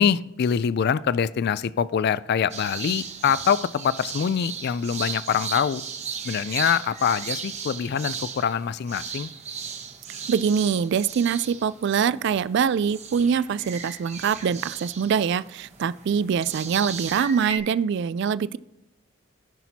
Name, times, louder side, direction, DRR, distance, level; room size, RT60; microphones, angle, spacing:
voice 1, 0.0-5.8 6.2-9.3, left 7 dB, 50° left, 17 dB, 0.3 m, -24 dB
sound 1, 2.5-12.6 12.9-17.6, right 6 dB, 35° right, 1.1 m, -36 dB
voice 2, 10.3-18.6, right 7 dB, 55° right, 17 dB, 0.3 m, -24 dB
15.0 x 6.0 x 2.8 m, 0.92 s
head